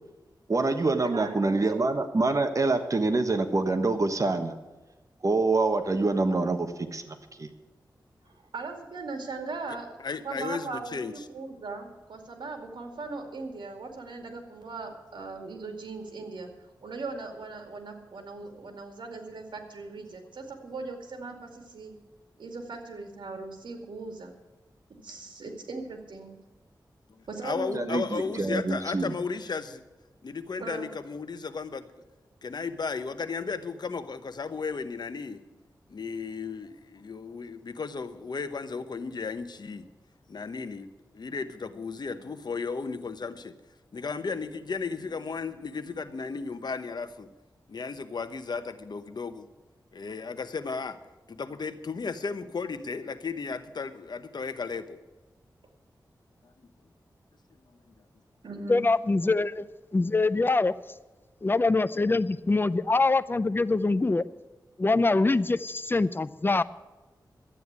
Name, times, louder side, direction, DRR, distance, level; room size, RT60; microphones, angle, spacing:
voice 1, 0.5-4.5 5.2-7.5 27.7-29.1, right 3 dB, 45° right, 8 dB, 1.3 m, -26 dB
voice 2, 1.0-1.9 8.2-9.9 10.2-16.5 16.8-21.9 22.4-24.3 25.0-26.4 27.3-28.5 30.6-30.9 58.4-58.8 59.2-59.4, right 3 dB, 90° right, 4 dB, 2.4 m, -39 dB
voice 3, 10.0-11.1 27.4-29.8 30.2-31.9 32.4-35.4 35.9-39.9 40.3-40.9 41.1-43.5 43.9-47.3 47.7-49.5 49.9-51.0 51.3-55.0, left 4 dB, 65° left, 11 dB, 1.0 m, -34 dB
voice 4, 58.7-59.7 59.9-60.7 61.4-64.2 64.8-66.6, left 3 dB, 30° left, 14 dB, 0.6 m, -24 dB
12.5 x 9.3 x 8.2 m, 1.1 s
wide cardioid pair, 80°, 8 cm